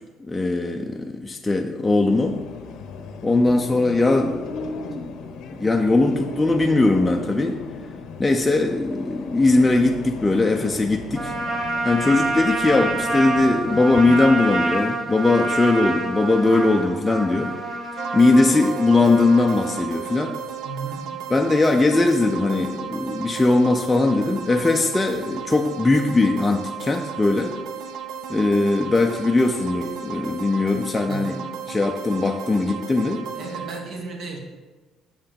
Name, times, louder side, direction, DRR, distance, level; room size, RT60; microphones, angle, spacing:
voice 1, 0.3-2.4 3.2-4.4 5.5-7.6 8.2-11.3 11.8-17.6 18.1-20.4 21.3-27.6 28.3-31.4 31.7-33.2, left 2 dB, 15° left, 2 dB, 0.5 m, -20 dB
sound 1, 2.1-14.5, left 4 dB, 70° left, 0.7 m, -35 dB
Trumpet, 11.1-19.8, right 2 dB, 25° right, 1.3 m, -27 dB
sound 2, 18.0-33.8, right 7 dB, 80° right, 0.6 m, -34 dB
voice 2, 20.6-21.2 31.1-31.6 33.3-34.4, right 4 dB, 55° right, 2 dB, 1.6 m, -34 dB
7.2 x 5.6 x 5.2 m, 1.3 s
cardioid pair, 105°, 0 cm